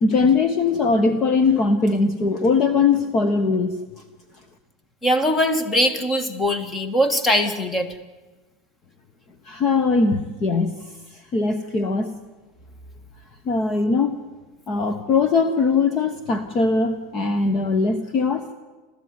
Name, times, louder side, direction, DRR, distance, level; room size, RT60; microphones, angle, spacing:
voice 1, 0.0-3.8 9.4-10.7 11.1-12.1 13.4-14.2 14.7-18.5, left 4 dB, 30° left, 10 dB, 1.2 m, -20 dB
voice 2, 5.0-7.9, equal, 15° left, 11 dB, 1.8 m, -21 dB
30.0 x 13.5 x 9.6 m, 1.2 s
supercardioid pair, 165°, 0 cm